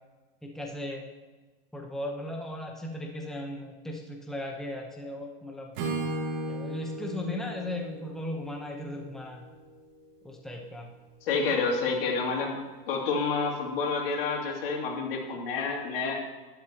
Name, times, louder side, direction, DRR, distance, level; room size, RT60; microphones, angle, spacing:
voice 1, 0.4-1.0 1.7-5.7 6.5-9.5 10.2-10.9, left 1 dB, ahead, 0 dB, 1.0 m, -37 dB
Acoustic guitar / Strum, 5.7-9.7, right 2 dB, 60° right, 2.9 m, -36 dB
voice 2, 11.2-12.6 12.9-16.1, left 4 dB, 75° left, -1 dB, 2.8 m, -29 dB
11.5 x 11.0 x 3.0 m, 1.3 s
supercardioid pair, 140°, 29 cm